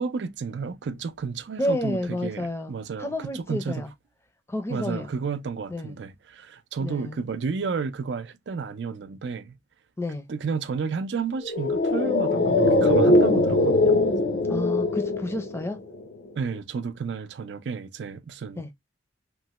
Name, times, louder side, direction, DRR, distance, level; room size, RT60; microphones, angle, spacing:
voice 1, 0.0-3.8 4.7-9.6 10.3-14.0 16.4-18.7, right 5 dB, 75° right, 0.4 m, -32 dB
voice 2, 1.6-3.9 4.5-5.1 5.7-5.9 6.8-7.2 10.0-10.3 14.5-15.8 18.6-18.7, left 1 dB, 15° left, 0.5 m, -30 dB
sound 1, 11.4-16.0 16.3-16.4, left 2 dB, 70° left, 0.6 m, -21 dB
3.1 x 2.1 x 2.9 m
head